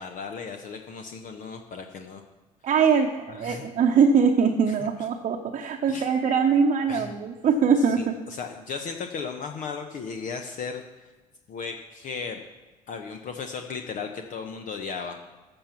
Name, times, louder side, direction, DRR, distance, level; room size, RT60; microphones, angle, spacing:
voice 1, 0.0-2.2 3.3-3.7 5.9-6.1 6.9-7.1 8.0-11.1 11.5-12.4 12.9-15.2, left 5 dB, 40° left, 5 dB, 1.0 m, -36 dB
voice 2, 2.6-8.1, right 6 dB, 35° right, 2 dB, 1.0 m, -22 dB
14.5 x 7.1 x 5.9 m, 1.2 s
figure-of-eight pair, 55°, 20 cm